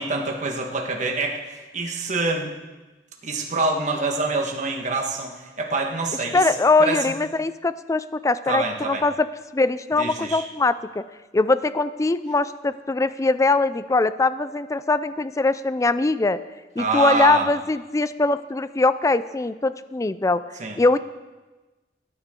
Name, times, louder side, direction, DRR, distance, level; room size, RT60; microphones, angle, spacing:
voice 1, 0.0-2.5 3.2-6.4 6.8-7.1 8.5-9.0 10.0-10.4 16.8-17.5 20.6-20.8, right 3 dB, 45° right, 1 dB, 1.5 m, -26 dB
voice 2, 6.3-9.3 9.5-11.0 11.3-16.4 16.8-20.4 20.8-21.0, left 3 dB, 20° left, 14 dB, 0.3 m, -22 dB
17.5 x 9.3 x 3.8 m, 1.2 s
head